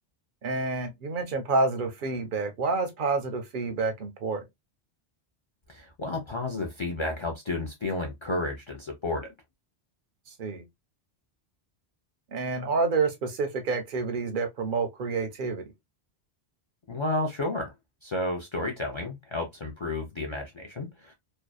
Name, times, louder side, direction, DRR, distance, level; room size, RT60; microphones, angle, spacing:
voice 1, 0.4-4.4 10.3-10.6 12.3-15.6, right 4 dB, 60° right, 0.6 m, -28 dB
voice 2, 5.7-9.3 16.9-17.7 18.0-21.1, left 2 dB, 50° left, 0.3 m, -32 dB
2.6 x 2.1 x 2.2 m
omnidirectional pair, 1.1 m